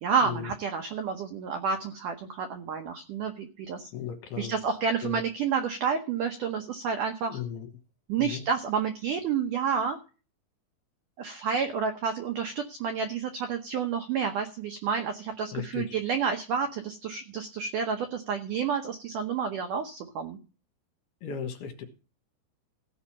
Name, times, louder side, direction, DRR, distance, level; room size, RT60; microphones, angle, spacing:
voice 1, 0.0-3.9 4.4-7.4 8.1-10.0 11.2-20.4, right 6 dB, 85° right, 6 dB, 1.8 m, -30 dB
voice 2, 3.9-4.5 5.0-5.2 7.3-7.7 8.2-8.5 15.5-15.9 21.2-21.9, left 8 dB, 65° left, 6 dB, 3.1 m, -36 dB
16.0 x 5.4 x 7.3 m, 0.35 s
omnidirectional pair, 5.2 m